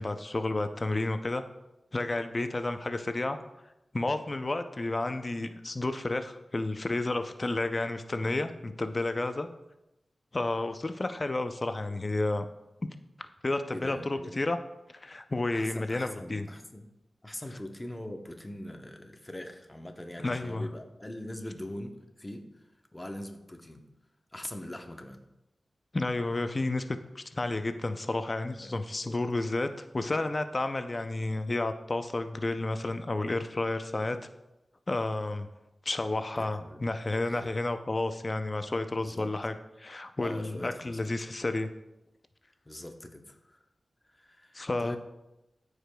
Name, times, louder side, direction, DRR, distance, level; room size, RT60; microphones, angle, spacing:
voice 1, 0.0-1.5 1.9-3.4 3.9-9.5 10.3-12.5 13.4-14.6 14.9-16.5 20.2-20.7 25.9-34.2 34.9-35.5 35.9-41.7 44.5-45.0, left 2 dB, 35° left, 8 dB, 0.4 m, -31 dB
voice 2, 13.7-14.4 15.5-16.9 17.2-22.6 22.9-23.8 24.3-25.2 28.6-28.8 29.1-29.2 36.4-36.8 37.3-37.5 39.0-39.3 40.2-41.0 42.7-43.6 44.1-45.0, left 1 dB, 20° left, 4 dB, 0.8 m, -42 dB
14.0 x 4.8 x 2.2 m, 0.94 s
wide cardioid pair, 85°, 0 cm